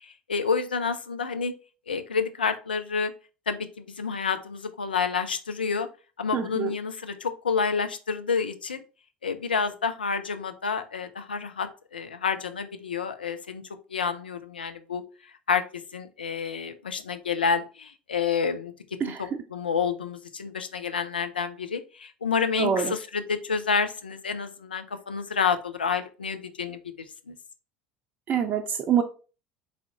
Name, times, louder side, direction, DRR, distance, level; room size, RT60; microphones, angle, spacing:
voice 1, 0.0-1.5 1.9-3.1 3.5-5.9 6.2-8.8 9.2-13.6 13.9-15.0 15.5-15.6 15.9-18.7 19.0-26.8 27.3-27.4, left 5 dB, 80° left, 8 dB, 0.4 m, -29 dB
voice 2, 6.3-6.7 19.0-19.2 22.6-22.9 28.3-29.0, right 8 dB, 35° right, 5 dB, 0.5 m, -25 dB
3.6 x 3.4 x 2.8 m, 0.35 s
figure-of-eight pair, 70°, 5 cm